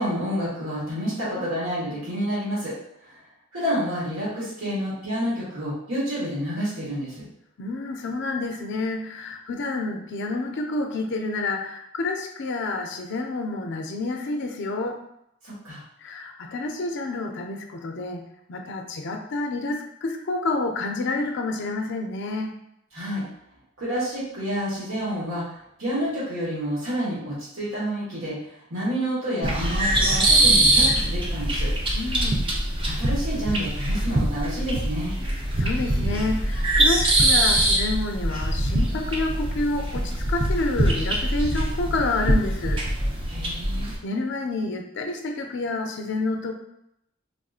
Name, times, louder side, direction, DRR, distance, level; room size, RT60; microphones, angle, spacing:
voice 1, 0.0-2.7 3.0-3.2 3.5-7.3 15.4-15.8 22.9-23.2 23.8-31.7 32.8-35.1 43.3-43.9, equal, 80° right, -7 dB, 1.2 m, -29 dB
voice 2, 7.6-15.0 16.0-22.5 31.9-32.5 35.6-42.9 44.0-46.5, left 2 dB, 60° left, 4 dB, 0.4 m, -29 dB
sound 1, 29.4-44.0, right 1 dB, 25° right, 0.4 m, -23 dB
3.5 x 2.5 x 2.4 m, 0.79 s
head